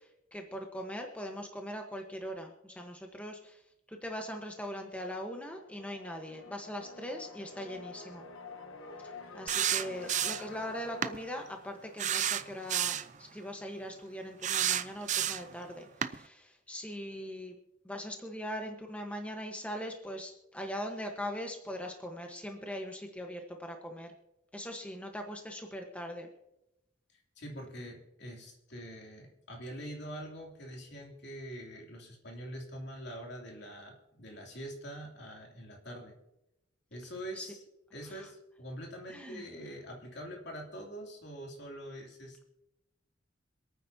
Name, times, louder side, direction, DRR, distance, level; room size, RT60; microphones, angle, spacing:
voice 1, 0.0-3.6 3.9-8.3 9.3-17.6 17.8-24.1 24.5-26.3 37.3-37.5 38.1-38.3 39.1-39.4, equal, 5° left, 2 dB, 1.1 m, -41 dB
sound 1, 5.2-12.8, left 4 dB, 85° left, 1.2 m, -49 dB
sound 2, 9.5-10.5 11.0-11.2 12.0-13.1 14.4-15.5 16.0-16.2, right 10 dB, 40° right, 0.5 m, -30 dB
voice 2, 27.1-36.1 36.9-37.5 37.9-42.5, equal, 60° left, 0 dB, 2.8 m, -44 dB
27.5 x 9.3 x 2.8 m, 0.89 s
head